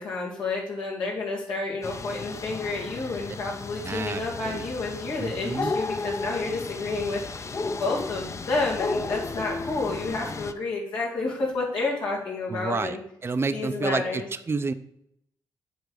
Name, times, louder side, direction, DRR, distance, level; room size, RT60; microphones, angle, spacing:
voice 1, 0.0-13.0 13.5-14.3, left 3 dB, 90° left, -5 dB, 2.3 m, -30 dB
sound 1, 1.8-10.5, left 3 dB, 35° left, 0.6 m, -34 dB
voice 2, 3.8-4.7 5.2-5.7 12.5-13.0 13.2-14.7, right 4 dB, 30° right, 10 dB, 0.5 m, -29 dB
8.1 x 3.3 x 6.4 m, 0.74 s
cardioid pair, 65°, 8 cm